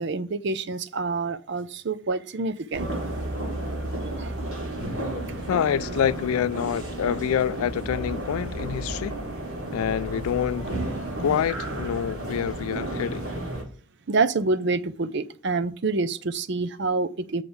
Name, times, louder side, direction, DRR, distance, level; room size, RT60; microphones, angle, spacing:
voice 1, 0.0-2.9 4.2-4.4 14.1-17.4, right 3 dB, 55° right, 0.6 m, -27 dB
sound 1, 2.7-13.6, right 1 dB, 90° right, 4.2 m, -32 dB
voice 2, 5.5-9.2 9.7-10.7 11.2-13.3, left 9 dB, 85° left, 0.3 m, -27 dB
7.8 x 6.7 x 3.5 m
head